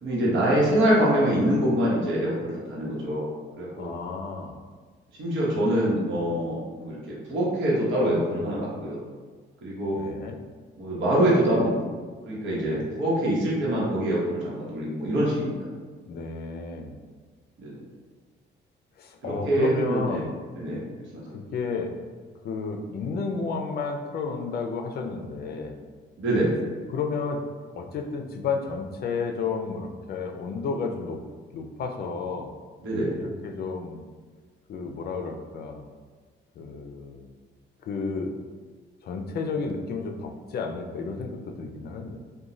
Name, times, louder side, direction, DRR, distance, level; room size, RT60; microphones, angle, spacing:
voice 1, 0.0-3.3 3.6-3.9 5.2-9.0 9.6-10.0 10.8-11.9 12.3-15.6 17.6-17.8 19.2-20.2 20.5-20.8 21.1-21.4 26.2-26.5 32.8-33.2, right 1 dB, 75° right, -6 dB, 1.0 m, -25 dB
voice 2, 3.8-4.5 9.9-10.4 12.5-12.9 16.1-17.0 19.0-20.3 21.3-21.9 22.4-25.8 26.9-27.4 27.7-31.2 31.5-32.5 33.2-34.0 34.7-35.9 36.6-37.3 37.8-38.3 39.0-42.2, left 4 dB, 55° left, 3 dB, 0.4 m, -32 dB
2.5 x 2.2 x 3.0 m, 1.5 s
cardioid pair, 90°, 20 cm